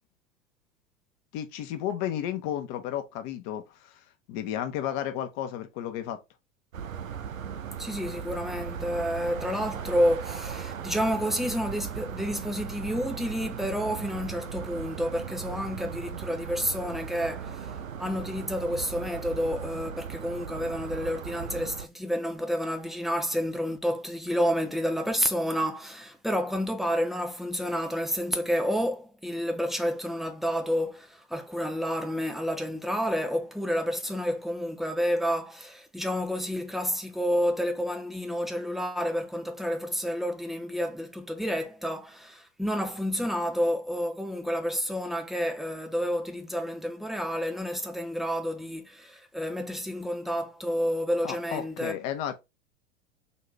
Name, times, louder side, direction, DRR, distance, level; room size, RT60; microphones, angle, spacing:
voice 1, 1.3-4.0 4.3-6.2 51.2-52.4, left 10 dB, 45° left, 1.0 m, -33 dB
sound 1, 6.7-21.9, right 7 dB, 85° right, 0.6 m, -38 dB
voice 2, 7.8-52.0, equal, ahead, 0.6 m, -30 dB
4.0 x 2.8 x 3.4 m
figure-of-eight pair, 85°, 39 cm